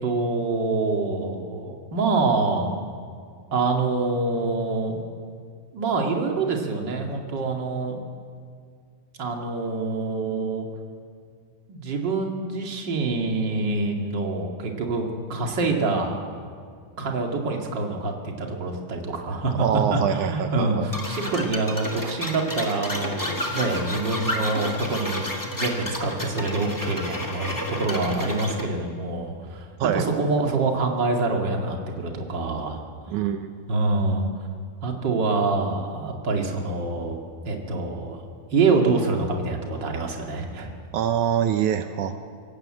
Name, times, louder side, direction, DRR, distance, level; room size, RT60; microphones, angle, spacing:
voice 1, 0.0-2.7 3.5-5.0 5.7-8.0 9.2-10.7 11.7-16.2 17.0-32.8 33.7-34.3 34.8-37.2 37.4-38.2 38.5-40.7, right 3 dB, 35° right, 1 dB, 2.3 m, -26 dB
voice 2, 19.6-20.9 29.8-30.0 33.1-33.5 40.9-42.1, right 9 dB, 85° right, 7 dB, 1.7 m, -24 dB
sound 1, 20.9-28.7, left 1 dB, 10° left, 1.4 m, -31 dB
26.0 x 18.5 x 7.8 m, 2.2 s
omnidirectional pair, 4.6 m